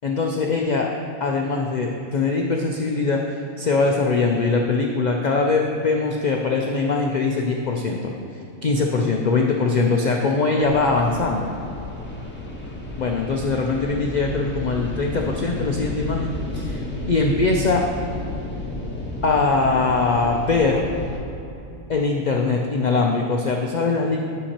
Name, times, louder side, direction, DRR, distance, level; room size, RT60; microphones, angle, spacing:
voice 1, 0.0-0.9 1.2-8.1 8.6-11.5 13.0-16.8 17.1-17.9 19.2-20.9 21.9-24.2, left 3 dB, 70° left, 1 dB, 0.4 m, -22 dB
sound 1, 10.6-21.2, left 1 dB, 10° left, 0.9 m, -32 dB
10.0 x 6.9 x 2.9 m, 2.8 s
omnidirectional pair, 1.4 m